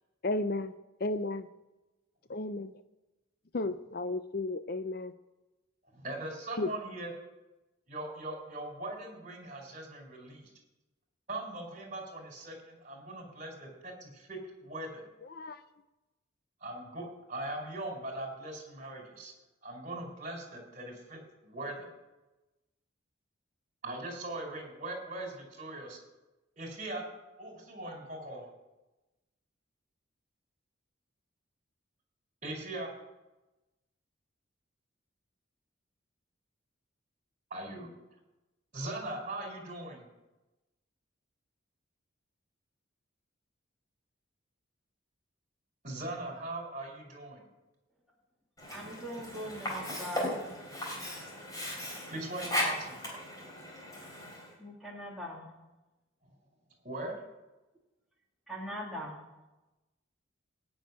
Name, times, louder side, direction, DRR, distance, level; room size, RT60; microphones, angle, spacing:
voice 1, 0.2-0.7 1.0-1.4 2.3-2.7 3.5-5.1 6.6-6.7 15.3-15.6, left 2 dB, 50° left, 10 dB, 0.5 m, -33 dB
voice 2, 5.9-7.1 7.9-10.5 11.3-15.1 16.6-19.3 19.6-21.9 23.8-26.0 26.6-27.1 27.4-28.4 32.4-32.9 37.5-37.9 38.7-40.1 45.8-47.4 51.8-53.2 56.2-56.3 56.8-57.2, right 2 dB, 35° right, 2 dB, 4.0 m, -40 dB
Sink (filling or washing), 48.6-54.5, equal, 20° left, 3.8 m, -37 dB
voice 3, 48.7-50.4 54.6-55.5 58.5-59.2, equal, ahead, -5 dB, 2.5 m, -41 dB
17.0 x 6.5 x 9.4 m, 1.1 s
head